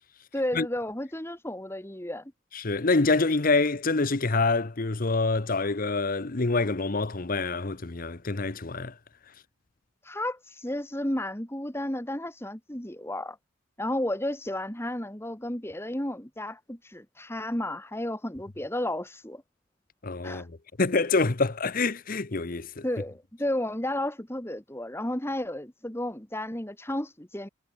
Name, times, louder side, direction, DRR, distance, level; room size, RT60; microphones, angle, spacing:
voice 1, 0.3-2.3 10.0-13.4 13.8-19.4 20.2-20.5 22.8-27.5, left 1 dB, 10° left, 2.0 m, -32 dB
voice 2, 2.5-8.9 20.0-22.8, left 3 dB, 45° left, 0.9 m, -26 dB
head